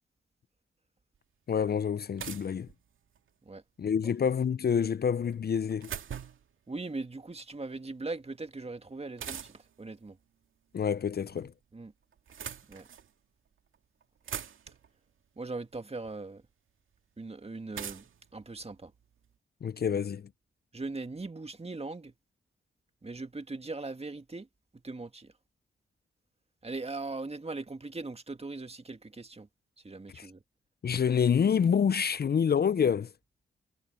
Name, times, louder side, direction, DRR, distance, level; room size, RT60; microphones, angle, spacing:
sound 1, 1.1-1.2 2.2-3.3 5.3-6.5 9.2-9.8 10.9-11.5 12.1-13.1 13.7-13.8 14.0-14.9 16.0-16.1 17.7-19.3, right 8 dB, 75° right, 2.3 m, -42 dB
voice 1, 1.5-2.7 3.8-5.9 10.7-11.5 19.6-20.3 30.2-30.3 30.8-33.1, left 7 dB, 50° left, 0.6 m, -27 dB
voice 2, 6.7-10.2 11.7-11.9 12.7-12.9 15.4-16.4 17.2-18.9 20.7-22.1 23.0-24.5 24.7-25.3 26.6-29.5 29.8-30.4, right 3 dB, 30° right, 2.0 m, -40 dB
supercardioid pair, 45°, 21 cm